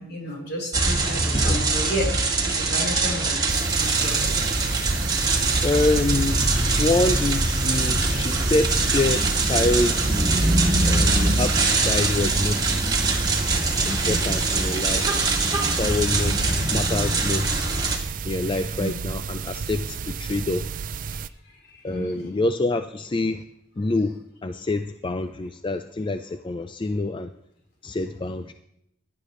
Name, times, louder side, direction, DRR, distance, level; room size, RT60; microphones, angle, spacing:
voice 1, 0.0-2.1 2.4-4.3 16.2-16.6 18.8-19.1 21.9-22.3, equal, 60° left, 0 dB, 4.2 m, -32 dB
sound 1, 0.7-18.0, right 3 dB, 20° right, 1.9 m, -23 dB
sound 2, 3.5-21.3, right 5 dB, 45° right, 0.4 m, -32 dB
voice 2, 5.6-6.5 6.8-10.6 10.8-12.7 13.8-15.1 15.6-16.4 16.7-17.7 18.2-20.7 21.8-23.4 23.8-27.3 27.8-28.5, left 2 dB, 25° left, 10 dB, 0.4 m, -26 dB
17.0 x 11.0 x 3.1 m, 0.79 s
head